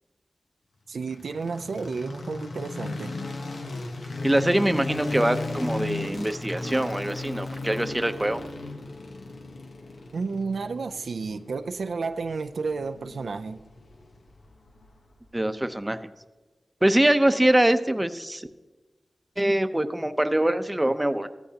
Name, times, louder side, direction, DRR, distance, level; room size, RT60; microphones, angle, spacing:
voice 1, 0.9-3.1 10.1-13.6, right 4 dB, 85° right, 0.4 m, -31 dB
sound 1, 1.0-15.1, left 2 dB, 80° left, 1.1 m, -36 dB
voice 2, 4.2-8.4 15.3-16.0 16.8-18.5 19.4-21.3, right 1 dB, 15° right, 0.8 m, -23 dB
15.0 x 14.0 x 2.9 m
cardioid pair, 45°, 0 cm